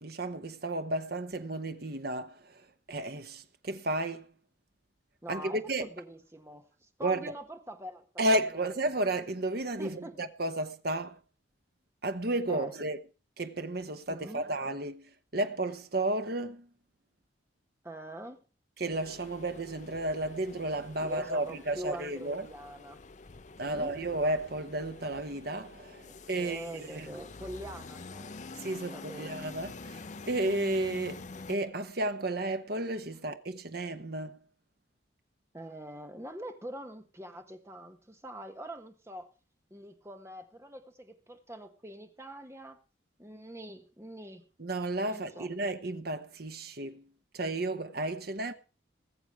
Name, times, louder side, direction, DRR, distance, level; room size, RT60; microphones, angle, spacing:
voice 1, 0.0-4.3 5.3-5.9 7.0-7.3 8.2-11.2 12.0-13.0 13.4-16.7 18.8-22.5 23.6-27.1 28.6-34.4 44.6-47.1 47.3-48.5, right 1 dB, 50° right, 1.1 m, -33 dB
voice 2, 5.2-8.3 8.5-8.7 9.8-10.2 12.5-12.7 14.1-14.5 17.8-18.4 21.0-23.0 23.6-24.0 26.1-28.4 28.9-29.3 35.5-39.3 39.7-42.8 43.2-44.5 45.1-45.5, right 1 dB, 15° right, 1.3 m, -44 dB
sound 1, 18.9-31.6, left 3 dB, 35° left, 0.6 m, -47 dB
20.0 x 7.4 x 4.8 m
head